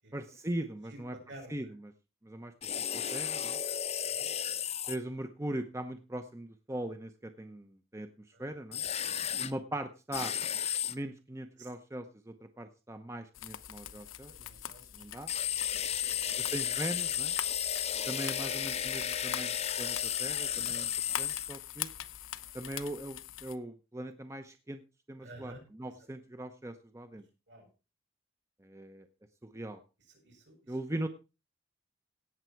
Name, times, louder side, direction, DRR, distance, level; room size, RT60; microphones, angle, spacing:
voice 1, 0.1-1.1 1.5-1.7 2.2-2.5 2.9-3.6 4.9-8.1 8.4-8.8 9.4-10.3 10.9-14.3 14.9-15.3 16.5-17.3 18.1-20.9 21.2-21.9 22.5-24.8 25.1-27.3 28.6-29.0 29.4-29.8 30.7-31.1, right 1 dB, 15° right, 8 dB, 0.7 m, -40 dB
voice 2, 1.3-1.7 4.0-4.3 8.3-8.6 9.0-9.6 11.6-11.7 14.3-15.1 15.4-16.5 18.3-18.5 22.4-22.6 25.2-25.6 25.9-26.0 27.1-27.2 27.5-27.7 30.0-30.8, right 1 dB, 65° right, 1 dB, 7.4 m, -53 dB
sound 1, 2.6-5.0 8.7-9.5 10.1-10.9 15.3-21.5, left 10 dB, 30° left, 0.7 m, -33 dB
sound 2, 13.3-23.6, left 10 dB, 85° left, 0.9 m, -44 dB
17.0 x 7.3 x 4.6 m, 0.32 s
head